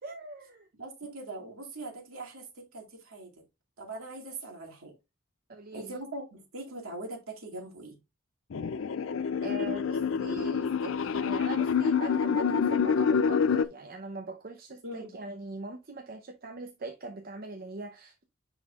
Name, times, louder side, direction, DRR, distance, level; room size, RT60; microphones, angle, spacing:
voice 1, 0.0-0.7 5.5-5.9 9.4-18.2, right 2 dB, 45° right, 0.7 m, -41 dB
voice 2, 0.8-3.4 3.8-4.9 5.7-8.0 14.8-15.1, right 2 dB, 85° right, 2.4 m, -41 dB
sound 1, 8.5-13.7, left 6 dB, 65° left, 0.4 m, -27 dB
9.9 x 4.0 x 2.4 m
head